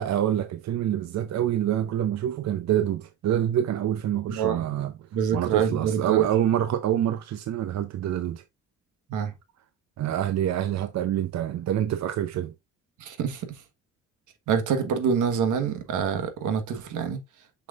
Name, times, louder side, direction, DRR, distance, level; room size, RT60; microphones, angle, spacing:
voice 1, 0.0-4.9 5.3-8.4 10.0-12.5, right 11 dB, 60° right, 0.7 m, -26 dB
voice 2, 4.3-4.7 5.1-6.3 9.1-9.3 13.0-13.6 14.5-17.2, right 7 dB, 80° right, 1.4 m, -26 dB
6.2 x 6.1 x 2.5 m
cardioid pair, 90°, 30 cm